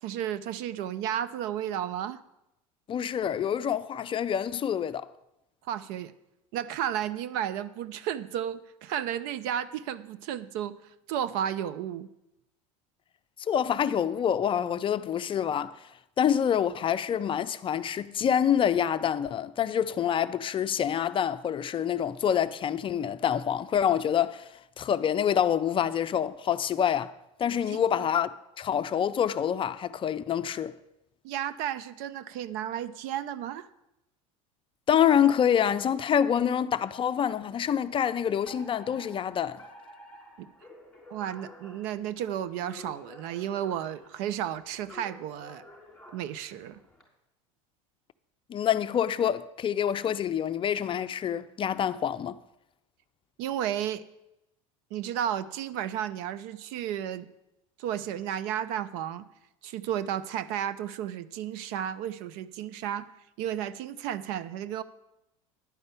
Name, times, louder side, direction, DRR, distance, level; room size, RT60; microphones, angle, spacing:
voice 1, 0.0-2.2 5.7-6.1 6.5-10.8 11.1-12.1 27.7-27.8 31.2-33.7 40.4-40.5 41.1-45.6 46.1-46.8 53.4-54.0 54.9-57.3 57.8-59.3 59.6-63.1 63.4-64.8, right 10 dB, 65° right, 0.7 m, -33 dB
voice 2, 2.9-5.1 13.5-15.9 16.2-24.5 24.8-27.1 27.4-30.8 34.9-39.6 48.5-52.4, left 9 dB, 30° left, 0.5 m, -26 dB
Alarm, 38.5-47.0, equal, 5° left, 4.1 m, -51 dB
10.5 x 5.4 x 8.2 m
hypercardioid pair, 90°, 17 cm